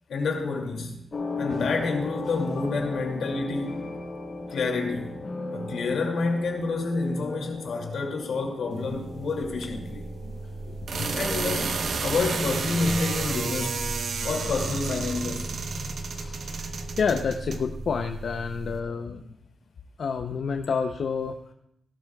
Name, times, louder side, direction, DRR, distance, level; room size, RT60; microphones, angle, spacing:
voice 1, 0.1-1.0 1.4-3.8 4.5-5.1 5.5-10.0 11.1-13.9 14.2-15.5, left 3 dB, 85° left, 2.4 m, -28 dB
sound 1, 1.1-12.4 12.7-17.5, left 2 dB, 45° left, 3.7 m, -38 dB
sound 2, 8.7-18.8, right 4 dB, 70° right, 0.9 m, -32 dB
voice 2, 10.7-11.1 14.2-14.3 16.6-19.4 20.0-21.5, left 5 dB, 65° left, 0.6 m, -29 dB
17.5 x 12.0 x 2.3 m
wide cardioid pair, 130°, 0 cm